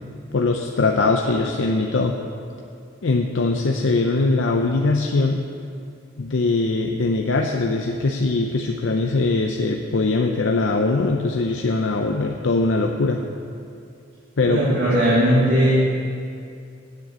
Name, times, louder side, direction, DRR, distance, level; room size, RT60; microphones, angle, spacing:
voice 1, 0.3-2.2 3.0-5.4 6.2-13.2 14.4-14.6, left 3 dB, 85° left, 2 dB, 0.6 m, -21 dB
voice 2, 14.4-15.8, equal, 65° right, -11 dB, 2.6 m, -18 dB
9.2 x 7.6 x 8.1 m, 2.5 s
head